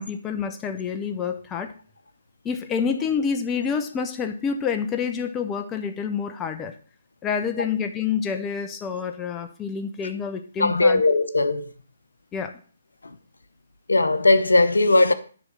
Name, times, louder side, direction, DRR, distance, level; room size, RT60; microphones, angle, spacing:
voice 1, 0.0-1.7 2.4-6.7 7.2-11.0 12.3-12.6, left 6 dB, 15° left, 0.9 m, -28 dB
voice 2, 10.6-11.7 13.0-13.2 13.9-15.1, left 2 dB, 85° left, 0.8 m, -19 dB
10.0 x 3.6 x 6.3 m
figure-of-eight pair, 140°, 0 cm